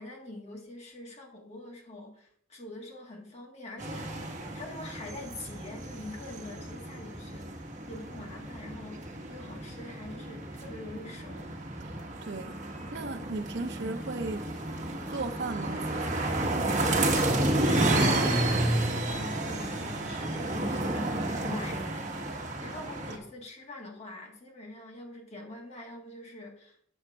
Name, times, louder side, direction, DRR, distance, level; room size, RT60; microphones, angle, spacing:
voice 1, 0.0-11.5 17.9-26.9, left 2 dB, 35° left, 1.6 m, -44 dB
sound 1, 3.8-23.2, right 1 dB, 40° right, 1.3 m, -31 dB
voice 2, 12.2-12.6 12.9-14.5 15.1-16.3, right 3 dB, 65° right, 0.7 m, -36 dB
8.0 x 4.3 x 6.1 m
head